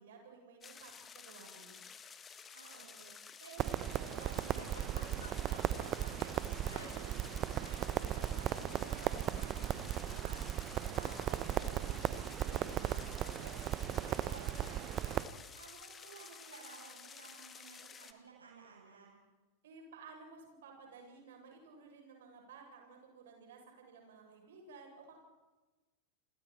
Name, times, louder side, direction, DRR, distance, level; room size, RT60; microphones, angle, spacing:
voice 1, 0.0-1.8 11.0-11.7 19.6-25.2, right 4 dB, 60° right, 1 dB, 7.5 m, -55 dB
sound 1, 0.6-18.1, left 6 dB, 20° left, 1.7 m, -53 dB
voice 2, 2.5-3.1 3.4-10.4 10.8-13.6 13.9-15.2 15.5-19.2, right 5 dB, 75° right, -2 dB, 7.4 m, -55 dB
Crackle, 3.6-15.2, right 11 dB, 35° right, 1.0 m, -37 dB
Giggle, 4.6-5.9 6.7-7.2 7.5-7.7 8.6-8.8, left 5 dB, 65° left, 6.2 m, -52 dB
29.5 x 22.5 x 4.5 m, 1.2 s
figure-of-eight pair, 90°, 0 cm